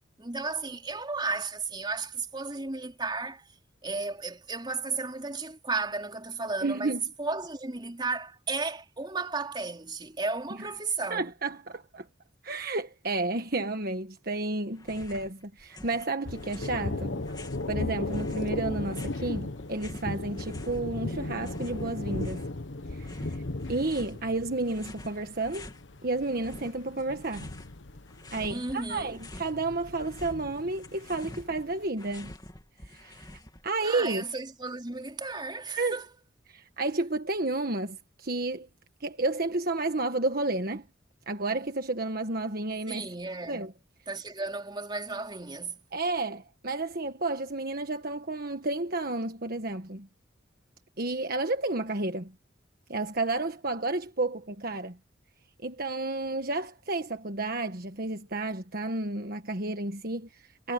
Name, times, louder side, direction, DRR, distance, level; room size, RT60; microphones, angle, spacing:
voice 1, 0.0-3.5 3.8-11.3 28.5-29.2 33.8-36.0 42.9-43.7 44.1-45.8, right 3 dB, 25° right, 3.6 m, -34 dB
voice 2, 6.6-7.0 11.1-12.1 12.4-17.2 17.7-22.4 22.9-23.4 23.7-25.7 26.0-27.5 28.3-32.3 32.8-33.3 33.6-34.2 35.8-36.0 36.5-38.7 39.0-40.8 41.3-43.1 43.5-43.7 45.9-50.1 51.0-52.3 52.9-55.0 55.6-60.7, right 2 dB, 50° right, 1.5 m, -31 dB
sound 1, 14.8-15.3 15.6-17.7 18.1-20.8 21.1-22.6 23.0-24.2 24.6-25.8 26.2-27.8 28.1-29.6 29.9-33.7, left 1 dB, 20° left, 2.8 m, -47 dB
Thunder, 16.2-31.8, left 2 dB, 75° left, 1.2 m, -37 dB
head